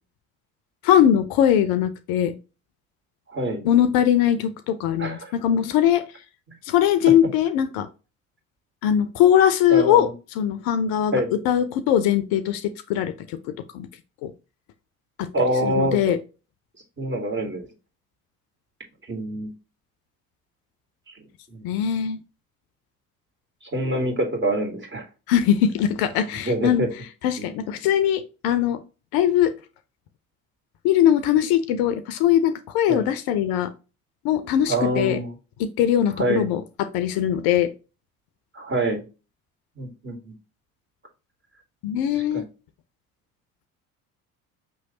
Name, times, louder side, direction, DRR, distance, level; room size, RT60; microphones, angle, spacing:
voice 1, 0.8-2.3 3.6-6.0 6.7-7.9 8.8-10.1 10.4-13.1 13.7-13.9 14.2-14.3 15.2-15.3 15.6-16.2 21.6-22.2 25.3-26.9 27.2-28.8 29.1-29.5 30.8-33.7 34.2-35.2 35.6-37.7 41.8-42.5, left 10 dB, 60° left, 11 dB, 0.6 m, -21 dB
voice 2, 3.3-3.6 5.0-5.3 9.7-10.1 11.1-11.4 15.3-16.2 17.0-17.7 19.1-19.5 21.1-21.2 21.5-21.7 23.7-25.0 26.4-26.9 27.4-27.5 32.9-33.0 34.7-35.3 36.2-36.5 38.5-39.0 39.8-40.3 42.2-42.4, right 1 dB, 25° right, 0 dB, 1.8 m, -25 dB
5.6 x 3.1 x 2.8 m, 0.31 s
hypercardioid pair, 60°, 42 cm